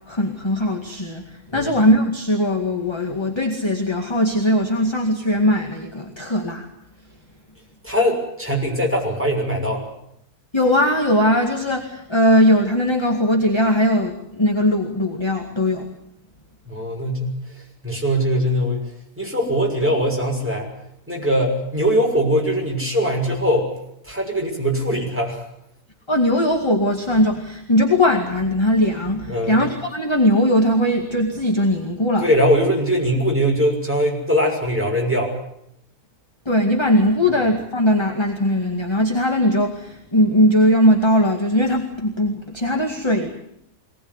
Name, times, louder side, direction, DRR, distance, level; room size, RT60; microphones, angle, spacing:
voice 1, 0.1-6.7 10.5-15.9 26.1-32.3 36.5-43.3, left 1 dB, 20° left, 2 dB, 2.1 m, -19 dB
voice 2, 7.8-9.8 16.7-17.3 17.8-18.9 19.2-20.7 21.1-23.7 24.0-25.4 29.3-29.6 32.2-35.3, equal, 10° right, -1 dB, 6.2 m, -21 dB
23.5 x 19.0 x 9.6 m, 0.74 s
omnidirectional pair, 1.6 m